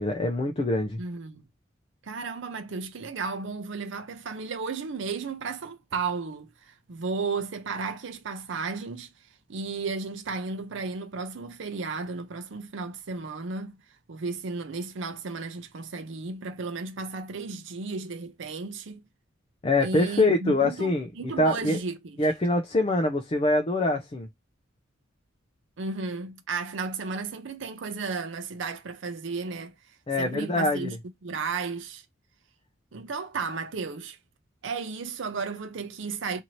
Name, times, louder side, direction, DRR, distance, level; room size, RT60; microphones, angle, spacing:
voice 1, 0.0-1.0 19.6-21.1 21.4-21.8 22.2-24.3 30.1-31.0, left 2 dB, 30° left, 0.4 m, -24 dB
voice 2, 1.0-1.4 2.0-9.1 9.5-13.7 14.1-19.0 19.8-22.3 25.8-29.7 30.2-31.0 31.2-32.0 32.9-34.2 34.6-36.4, right 4 dB, 70° right, 0.5 m, -34 dB
2.7 x 2.6 x 3.0 m
head